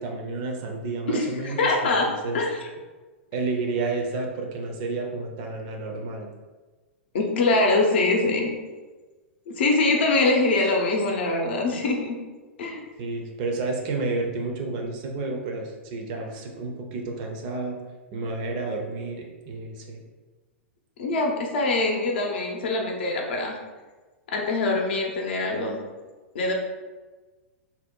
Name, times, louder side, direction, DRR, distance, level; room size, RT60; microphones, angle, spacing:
voice 1, 0.0-2.4 3.3-6.3 13.0-17.8 18.1-20.0, right 3 dB, 40° right, 2 dB, 0.5 m, -31 dB
voice 2, 1.1-2.1 2.3-2.6 7.1-8.5 9.5-12.2 12.6-12.8 21.0-23.5 24.3-25.8 26.3-26.5, left 2 dB, 55° left, 1 dB, 0.6 m, -23 dB
2.7 x 2.0 x 3.7 m, 1.3 s
figure-of-eight pair, 100°, 7 cm